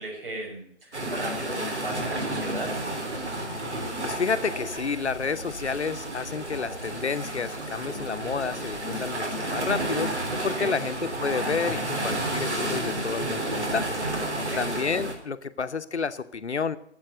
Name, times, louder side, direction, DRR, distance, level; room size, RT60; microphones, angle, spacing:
voice 1, 0.0-2.7 10.6-10.8 14.4-14.6, right 2 dB, 50° right, 1 dB, 6.0 m, -36 dB
sound 1, 0.9-15.1, right 1 dB, 70° right, 3.7 m, -31 dB
voice 2, 4.0-13.9 14.6-16.8, left 5 dB, 70° left, 11 dB, 1.0 m, -30 dB
12.0 x 8.0 x 9.3 m, 0.66 s
figure-of-eight pair, 145°, 35 cm